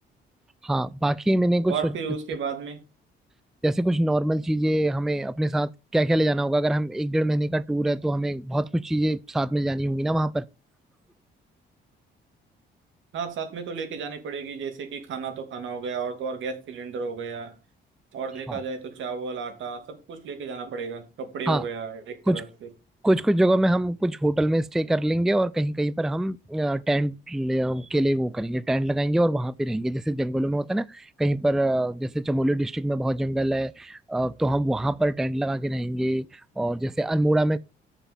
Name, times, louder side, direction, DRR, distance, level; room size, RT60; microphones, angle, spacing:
voice 1, 0.6-1.9 3.6-10.4 18.5-18.6 21.5-21.6 22.3-22.4 23.0-37.6, right 1 dB, ahead, 0.4 m, -24 dB
voice 2, 1.7-2.8 13.1-17.6 18.1-22.5, right 5 dB, 75° right, 2.7 m, -33 dB
7.2 x 7.0 x 7.0 m
cardioid pair, 90°, 20 cm